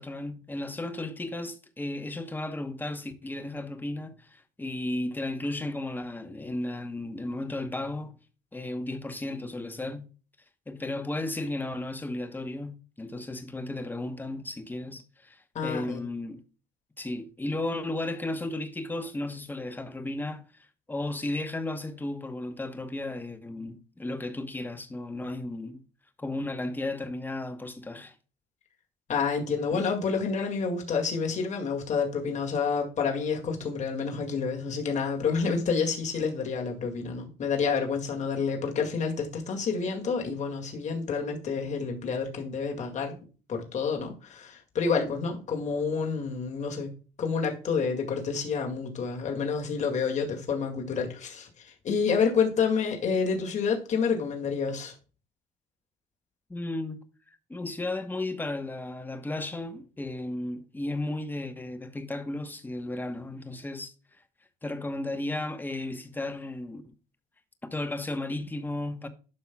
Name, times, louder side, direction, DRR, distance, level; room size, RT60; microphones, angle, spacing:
voice 1, 0.0-8.2 8.5-10.1 10.7-16.4 17.0-20.4 20.9-25.8 26.2-28.1 29.7-29.8 56.5-57.0 57.5-63.9 64.6-66.9 67.6-69.1, left 2 dB, 10° left, 1.0 m, -34 dB
voice 2, 15.5-16.0 29.1-43.1 43.5-46.9 47.2-54.9, left 5 dB, 45° left, 2.1 m, -29 dB
12.0 x 5.5 x 2.3 m
cardioid pair, 110°, 17 cm